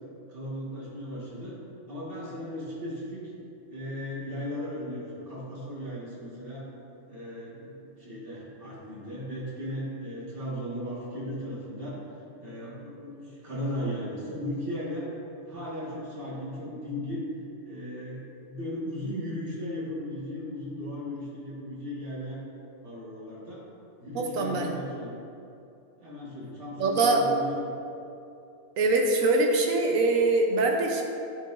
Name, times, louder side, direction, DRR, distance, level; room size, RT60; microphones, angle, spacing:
voice 1, 0.3-1.6 1.9-3.2 3.7-6.7 7.1-12.0 12.4-15.1 15.4-17.2 17.6-22.4 22.8-23.6 24.0-25.2 26.0-27.7, left 1 dB, 45° right, -7 dB, 1.8 m, -36 dB
voice 2, 24.1-24.8 26.8-27.2 28.8-31.0, right 3 dB, 75° right, 1 dB, 1.2 m, -23 dB
10.0 x 5.6 x 2.6 m, 2.7 s
omnidirectional pair, 1.4 m